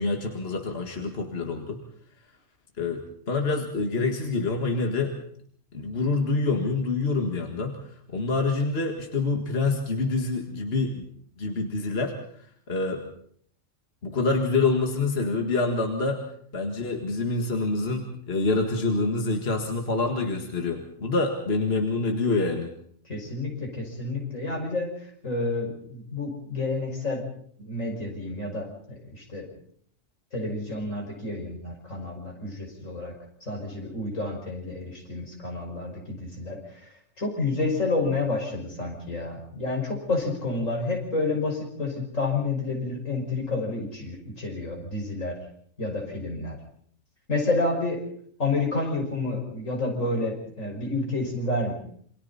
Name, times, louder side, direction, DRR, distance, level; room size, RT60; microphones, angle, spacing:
voice 1, 0.0-1.8 2.8-5.1 5.7-7.8 8.1-11.0 11.4-12.2 12.7-13.0 14.0-16.2 16.5-22.7, left 3 dB, 50° left, 3 dB, 2.1 m, -26 dB
voice 2, 23.1-24.9 25.2-27.2 27.6-29.5 30.3-33.1 33.4-36.9 37.2-45.4 45.8-46.6 47.3-48.0 48.4-51.7, left 3 dB, 85° left, 1 dB, 6.1 m, -29 dB
28.0 x 24.5 x 4.2 m, 0.62 s
omnidirectional pair, 1.3 m